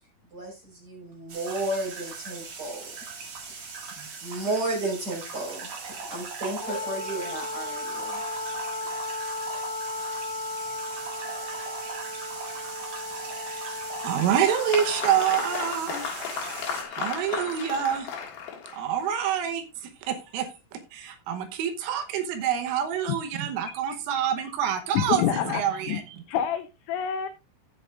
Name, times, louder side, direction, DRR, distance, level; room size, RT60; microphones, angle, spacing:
voice 1, 0.3-2.9 4.0-8.2, right 2 dB, 20° right, -2 dB, 4.9 m, -33 dB
sound 1, 1.3-16.8, right 4 dB, 55° right, 1.9 m, -39 dB
Wind instrument woodwind instrument, 6.6-15.8, left 3 dB, 30° left, 3.7 m, -35 dB
voice 2, 13.5-16.0 16.9-18.1 18.7-19.6 20.0-20.5 20.9-25.2 25.5-26.0, right 9 dB, 80° right, 8 dB, 3.5 m, -27 dB
Applause, 13.7-19.1, left 7 dB, 60° left, 3.3 m, -35 dB
voice 3, 24.9-26.0 26.3-27.3, left 9 dB, 85° left, 9 dB, 2.6 m, -27 dB
14.5 x 7.8 x 2.4 m, 0.28 s
omnidirectional pair, 5.9 m